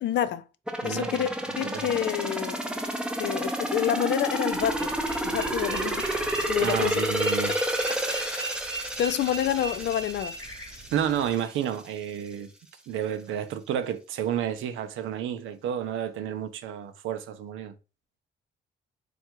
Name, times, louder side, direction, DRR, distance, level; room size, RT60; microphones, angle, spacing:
voice 1, 0.0-0.4 0.8-1.3 1.6-2.6 3.2-4.9 5.2-7.0 7.9-8.6 9.0-10.4, left 11 dB, 60° left, 0.4 m, -28 dB
sound 1, 0.7-11.4 11.8-11.9, right 1 dB, 5° right, 0.6 m, -30 dB
voice 2, 0.8-1.1 1.6-1.8 6.6-7.5 10.9-12.5 12.9-17.7, right 9 dB, 80° right, 0.6 m, -30 dB
sound 2, 2.4-2.5 4.2-11.1, right 3 dB, 15° left, 1.0 m, -40 dB
sound 3, 4.5-11.3, right 3 dB, 35° right, 0.9 m, -46 dB
3.3 x 2.3 x 4.4 m
cardioid pair, 90°, 20 cm